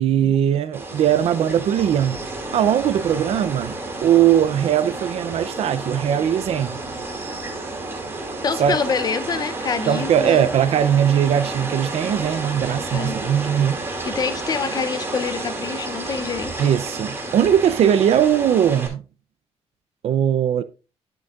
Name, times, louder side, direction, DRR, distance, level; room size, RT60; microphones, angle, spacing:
voice 1, 0.0-2.2 2.5-6.8 8.6-8.8 9.9-13.8 16.6-19.0 20.0-20.6, right 9 dB, 65° right, 0.5 m, -20 dB
sound 1, 0.7-18.9, right 2 dB, 20° right, 2.5 m, -31 dB
voice 2, 8.4-10.5 12.9-13.2 14.0-16.5, left 5 dB, 35° left, 0.6 m, -26 dB
10.5 x 7.6 x 2.4 m
cardioid pair, 155°, 11 cm